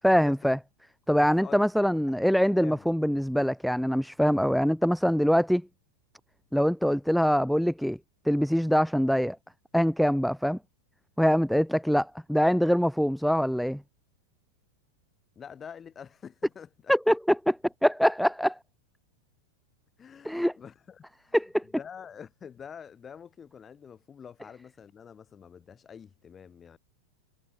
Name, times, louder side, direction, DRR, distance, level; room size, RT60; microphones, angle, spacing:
voice 1, 0.0-0.6 1.1-5.6 6.5-8.0 8.3-9.4 9.7-10.6 11.2-13.8 16.9-18.6 20.2-20.5 21.3-21.6, equal, ahead, 0.4 m, -24 dB
voice 2, 1.2-1.7 2.1-2.2 2.6-2.9 11.5-11.6 15.3-16.9 20.0-21.4 21.6-26.8, left 7 dB, 20° left, 6.5 m, -46 dB
figure-of-eight pair, 90°, 0 cm